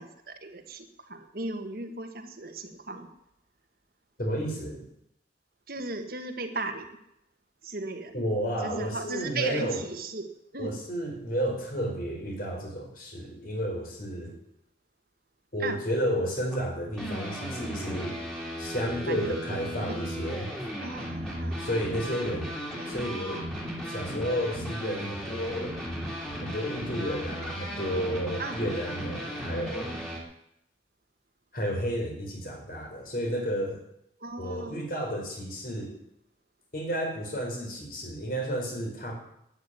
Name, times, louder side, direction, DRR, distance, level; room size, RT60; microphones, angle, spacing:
voice 1, 0.0-3.1 5.7-6.9 7.6-8.1 8.6-10.8 15.6-15.8 19.0-19.4 19.9-20.0 20.8-21.7 22.7-22.9 28.4-28.6 34.2-34.9, right 3 dB, 55° right, 6 dB, 1.6 m, -36 dB
voice 2, 4.2-4.8 8.1-9.8 10.6-14.3 15.5-18.1 18.6-20.5 21.6-22.5 22.9-23.4 23.9-25.8 26.4-29.9 31.5-33.8 34.4-35.9 36.7-39.1, equal, 50° left, 1 dB, 4.8 m, -32 dB
sound 1, 16.5-30.2, equal, ahead, 3.1 m, -36 dB
12.5 x 8.9 x 9.7 m, 0.78 s
head